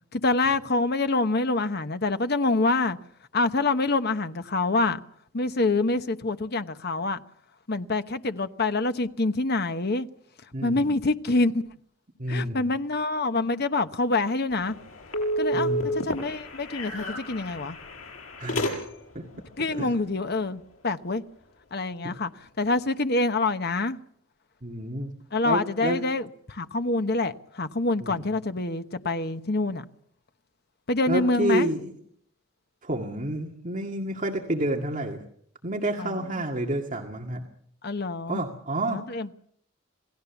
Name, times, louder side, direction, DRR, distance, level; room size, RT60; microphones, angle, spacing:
voice 1, 0.1-3.0 3.3-5.0 5.3-7.2 7.7-10.1 10.6-11.6 12.3-14.8 15.4-17.8 19.6-21.2 21.7-22.3 22.6-24.0 25.3-29.8 30.9-31.7 36.0-36.4 37.8-38.4 38.9-39.3, left 2 dB, 50° left, 1.1 m, -26 dB
voice 2, 10.5-10.9 12.2-12.7 15.5-15.9 18.4-18.7 19.2-19.3 19.7-20.0 22.0-22.1 24.6-25.1 25.4-26.0 28.0-28.2 31.1-31.9 32.8-35.2 35.6-37.4 38.3-39.3, right 1 dB, 40° right, 2.0 m, -29 dB
sound 1, 14.5-19.2, equal, 90° left, 7.2 m, -31 dB
28.0 x 18.0 x 7.2 m
head